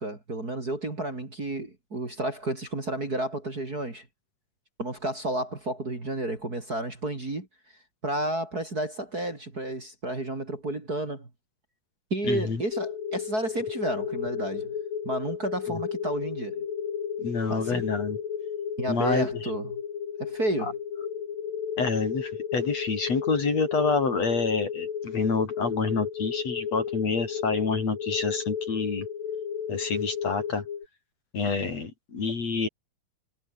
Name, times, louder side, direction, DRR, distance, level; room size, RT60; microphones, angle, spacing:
voice 1, 0.0-4.1 4.8-7.5 8.0-11.3 12.1-14.7 15.0-16.6 17.5-17.8 18.8-19.7 20.2-20.7, right 1 dB, 25° right, 3.9 m, -31 dB
voice 2, 12.2-12.6 17.2-18.2 18.9-19.3 20.6-20.7 21.8-29.1 29.7-30.6 31.3-32.7, left 4 dB, 45° left, 5.0 m, -28 dB
sound 1, 12.7-30.8, left 8 dB, 70° left, 4.7 m, -33 dB
omnidirectional pair, 4.2 m